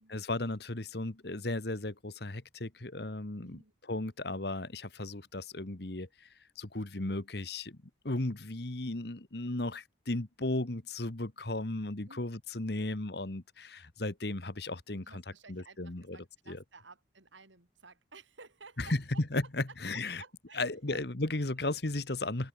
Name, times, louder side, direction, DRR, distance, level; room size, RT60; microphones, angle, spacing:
voice 1, 0.1-3.6 3.9-6.1 6.6-7.8 8.0-15.2 15.5-16.2 16.5-16.6 18.8-20.2 20.6-22.5, left 2 dB, 60° left, 1.6 m, -35 dB
voice 2, 3.4-3.7 12.1-12.2 15.0-19.0 19.9-21.0, right 4 dB, 85° right, 4.4 m, -55 dB
head